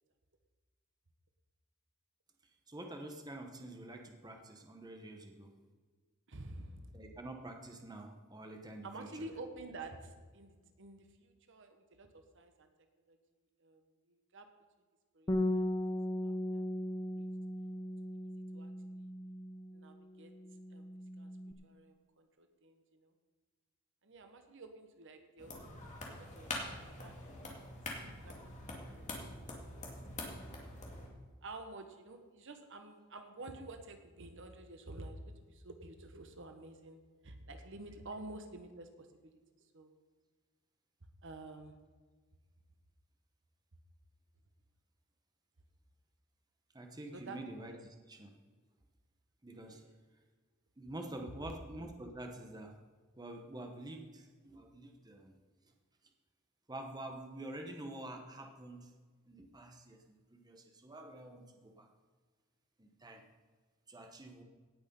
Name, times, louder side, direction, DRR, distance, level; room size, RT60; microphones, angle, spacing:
voice 1, 2.7-5.5 6.9-9.3 46.7-48.3 49.4-49.8 50.8-52.7 53.2-55.3 56.7-58.9 59.3-60.0 60.3-61.9 62.8-63.2 63.9-64.4, right 1 dB, 20° right, 4 dB, 1.1 m, -47 dB
voice 2, 6.3-6.9 8.8-12.1 12.3-12.7 13.1-13.2 13.6-13.8 14.1-14.4 15.1-15.6 16.2-16.6 17.2-17.3 18.5-19.1 19.7-20.3 20.7-20.9 21.2-21.3 21.6-23.1 24.0-26.5 26.8-27.5 28.0-28.9 29.2-29.8 31.4-39.1 39.7-39.9 41.2-41.7 47.1-47.4 49.6-49.9, right 2 dB, 60° right, 6 dB, 1.3 m, -50 dB
Bass guitar, 15.3-20.0 20.2-21.5, left 1 dB, 20° left, 0.7 m, -37 dB
sound 1, 25.4-31.1, left 2 dB, 35° left, 2.5 m, -45 dB
17.5 x 6.4 x 5.4 m, 1.4 s
head